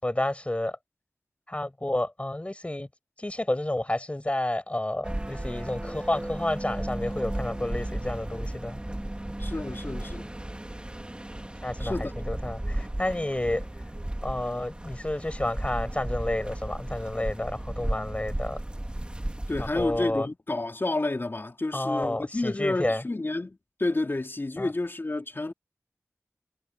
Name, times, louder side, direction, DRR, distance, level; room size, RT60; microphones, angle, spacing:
voice 1, 0.0-0.8 1.5-2.9 3.2-8.8 11.6-11.9 12.3-13.7 14.2-18.6 19.6-20.3 21.7-23.0 24.6-24.7, left 1 dB, 25° left, 6.3 m, -30 dB
sound 1, 5.0-20.2, right 1 dB, 20° right, 2.0 m, -34 dB
voice 2, 9.4-10.3 11.8-12.1 19.5-25.5, left 2 dB, 45° left, 3.7 m, -30 dB
wide cardioid pair, 60°, 5 cm